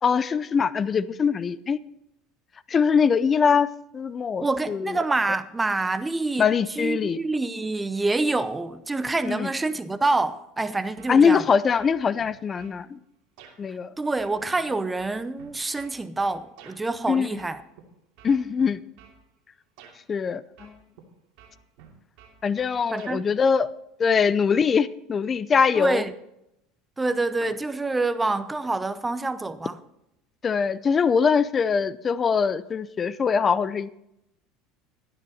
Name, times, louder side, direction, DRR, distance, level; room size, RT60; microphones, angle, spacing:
voice 1, 0.0-1.8 2.7-5.0 6.4-7.2 9.2-9.5 11.1-13.0 13.6-13.9 17.1-17.4 18.2-18.8 20.1-20.8 22.4-23.7 24.0-26.0 30.4-33.9, left 6 dB, 30° left, 0.6 m, -22 dB
voice 2, 4.4-11.5 14.0-17.6 22.9-23.2 25.7-26.1 27.0-29.8, right 3 dB, 10° right, 0.7 m, -27 dB
sound 1, 11.0-11.5 11.8-12.8 13.4-13.6 14.2-16.8 17.4-17.8 18.2-19.2 19.8-20.0 20.6-21.1 21.4-23.2, right 7 dB, 70° right, 2.8 m, -50 dB
12.5 x 11.0 x 4.2 m
supercardioid pair, 120°, 0 cm